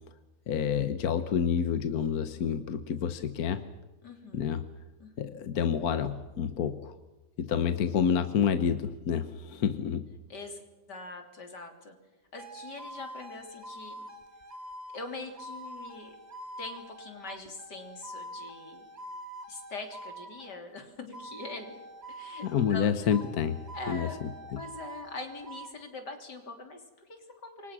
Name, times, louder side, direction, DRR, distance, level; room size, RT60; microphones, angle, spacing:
voice 1, 0.5-3.7 4.3-4.7 5.2-7.0 7.4-10.1 22.4-23.6 23.9-24.3, left 8 dB, 65° left, 10 dB, 1.4 m, -28 dB
voice 2, 4.0-4.7 5.0-5.5 10.3-10.6 10.9-12.0 12.3-14.0 14.9-16.2 16.6-18.9 19.5-21.8 22.1-23.2 23.7-24.2 24.6-27.7, left 3 dB, 80° left, 5 dB, 3.8 m, -43 dB
sound 1, 12.3-20.6 21.1-22.8 23.1-25.7, right 1 dB, 25° right, 2.0 m, -45 dB
28.0 x 24.0 x 6.1 m, 1.2 s
omnidirectional pair, 1.8 m